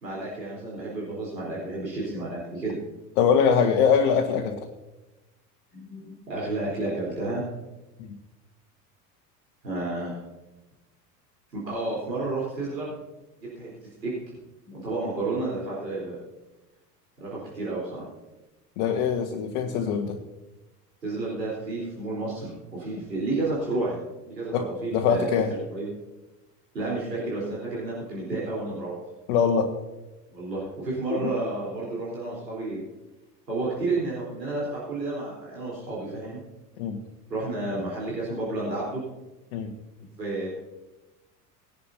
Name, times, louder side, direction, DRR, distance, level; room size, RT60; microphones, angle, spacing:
voice 1, 0.0-2.8 5.7-7.4 9.6-10.2 11.5-12.9 13.4-13.7 14.0-14.1 14.6-16.2 17.2-18.0 21.0-24.0 24.3-25.9 26.7-29.0 30.3-32.8 33.5-36.4 37.3-39.0 40.2-40.5, right 2 dB, 85° right, -6 dB, 4.2 m, -31 dB
voice 2, 3.2-4.6 8.0-8.2 18.8-20.2 24.5-25.5 29.3-29.7 31.2-31.3 36.8-37.0 39.5-39.7, left 6 dB, 55° left, 1 dB, 1.5 m, -23 dB
20.0 x 11.0 x 2.8 m, 1.1 s
figure-of-eight pair, 75°, 48 cm